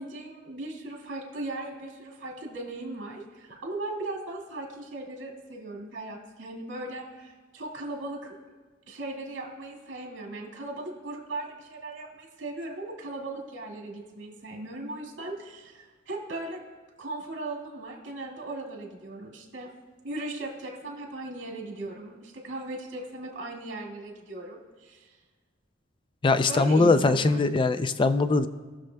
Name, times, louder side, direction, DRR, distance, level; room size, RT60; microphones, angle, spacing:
voice 1, 0.0-8.4 8.9-16.6 17.0-19.7 20.0-25.1 26.4-27.5, right 2 dB, 70° right, -1 dB, 1.8 m, -38 dB
voice 2, 26.2-28.5, left 3 dB, 25° left, 11 dB, 0.4 m, -21 dB
19.0 x 6.4 x 2.2 m, 1.4 s
head